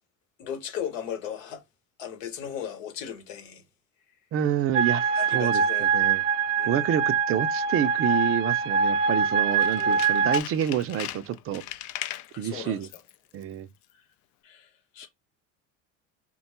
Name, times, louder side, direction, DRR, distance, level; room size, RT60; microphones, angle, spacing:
voice 1, 0.4-1.6 2.0-3.6 5.1-5.9 6.5-6.9 9.8-10.0 12.3-12.9 13.9-14.0 14.4-15.1, left 9 dB, 85° left, 1.0 m, -37 dB
voice 2, 4.3-5.0 5.3-6.2 6.6-11.6 12.4-12.9 13.3-13.7, right 10 dB, 40° right, 0.4 m, -28 dB
sound 1, 4.7-10.4, right 5 dB, 90° right, 0.6 m, -24 dB
Tools, 9.5-12.3 12.8-13.2 13.4-13.5, left 13 dB, 50° left, 0.5 m, -38 dB
3.5 x 2.2 x 4.2 m
supercardioid pair, 90°, 37 cm